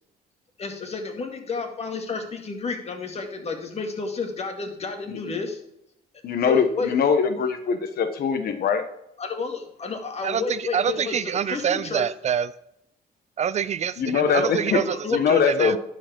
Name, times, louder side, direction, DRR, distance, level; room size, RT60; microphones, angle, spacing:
voice 1, 0.6-5.6 6.4-6.9 9.2-12.0 14.4-15.2, left 4 dB, 40° left, 5 dB, 2.0 m, -31 dB
voice 2, 5.1-5.4 6.2-8.8 14.0-14.8 15.1-15.8, left 6 dB, 60° left, 9 dB, 1.1 m, -22 dB
voice 3, 10.2-12.5 13.4-15.0 15.3-15.8, right 8 dB, 40° right, 17 dB, 0.4 m, -26 dB
11.5 x 5.0 x 4.5 m, 0.80 s
cardioid pair, 100°, 17 cm